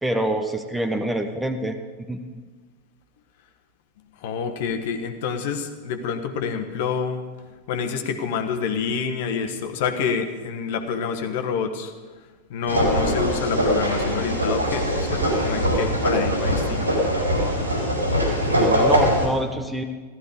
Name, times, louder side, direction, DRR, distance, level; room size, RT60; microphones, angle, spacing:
voice 1, 0.0-1.8 2.1-2.2 18.6-19.8, right 1 dB, 5° right, 7 dB, 1.0 m, -25 dB
voice 2, 4.2-7.2 7.7-11.9 12.5-16.9 18.5-18.6, left 6 dB, 50° left, 6 dB, 1.4 m, -27 dB
sound 1, 12.7-19.3, equal, 80° right, 4.0 m, -22 dB
15.5 x 13.0 x 5.1 m, 1.4 s
figure-of-eight pair, 90°, 0 cm